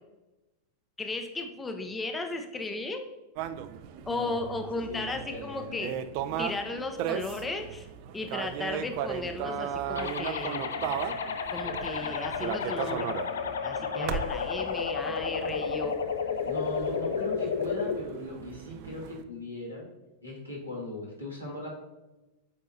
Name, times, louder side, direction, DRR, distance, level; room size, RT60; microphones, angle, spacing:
voice 1, 1.0-3.1 4.1-5.9 6.4-7.9 8.1-10.6 11.5-13.1 13.6-16.0, left 2 dB, 15° left, 5 dB, 0.5 m, -35 dB
sound 1, 3.4-19.2, right 9 dB, 45° right, 0.4 m, -37 dB
voice 2, 4.0-5.9 13.9-14.2 16.4-19.8 20.2-21.7, left 1 dB, 85° left, -5 dB, 2.0 m, -39 dB
sound 2, 9.9-17.9, left 6 dB, 65° left, 0.4 m, -32 dB
8.3 x 4.5 x 2.6 m, 1.1 s
figure-of-eight pair, 90°, 0 cm